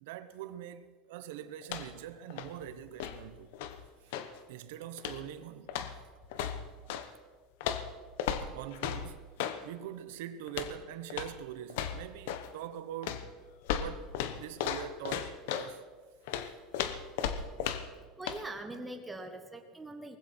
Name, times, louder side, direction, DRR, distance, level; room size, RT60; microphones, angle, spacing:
voice 1, 0.0-3.5 4.0-4.2 4.5-5.8 8.5-9.2 9.6-13.2 13.8-15.9, right 11 dB, 80° right, 0.9 m, -43 dB
sound 1, 1.6-2.1 2.3-4.4 5.0-5.3 5.7-7.1 7.6-9.6 10.5-10.8 11.1-11.4 11.7-12.5 13.0-15.7 16.3-18.0 18.3-18.4, left 9 dB, 75° left, 1.0 m, -36 dB
voice 2, 18.0-20.2, right 2 dB, 5° right, 1.3 m, -43 dB
19.0 x 15.5 x 4.4 m
cardioid pair, 170°, 0 cm